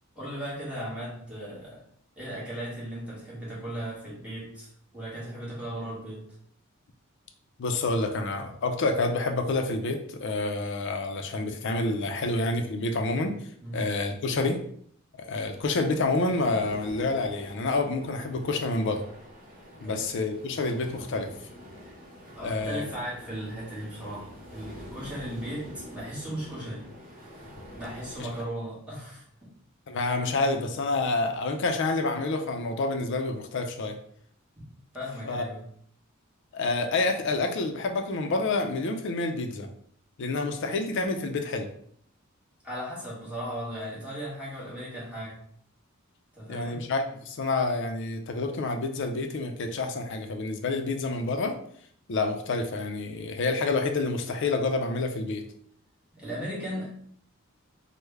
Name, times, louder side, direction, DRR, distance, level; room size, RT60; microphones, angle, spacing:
voice 1, 0.1-1.8 2.2-6.2 13.6-13.8 19.7-20.1 21.8-21.9 22.4-26.9 27.8-29.5 34.6-34.7 34.9-35.6 42.6-45.4 46.3-46.8 56.1-56.9, equal, 5° right, -8 dB, 1.4 m, -37 dB
voice 2, 7.6-13.3 13.7-14.6 15.3-19.0 19.8-21.3 22.4-22.8 28.2-28.3 29.9-34.0 35.2-35.4 36.5-39.7 40.2-41.7 46.5-51.6 52.1-55.4, left 3 dB, 60° left, 5 dB, 0.4 m, -28 dB
sound 1, 15.4-28.4, left 1 dB, 45° right, 0.9 m, -47 dB
3.2 x 2.1 x 3.4 m, 0.64 s
head